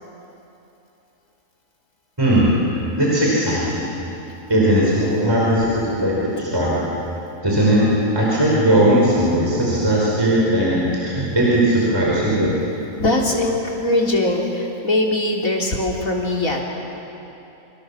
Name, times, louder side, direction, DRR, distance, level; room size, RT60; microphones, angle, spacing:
voice 1, 2.2-2.5 3.0-3.9 4.5-7.0 7.4-7.8 8.1-12.6, right 1 dB, 15° right, -6 dB, 5.3 m, -18 dB
voice 2, 13.0-16.6, left 2 dB, 65° left, -1 dB, 3.8 m, -21 dB
28.0 x 27.5 x 7.2 m, 2.9 s
omnidirectional pair, 1.6 m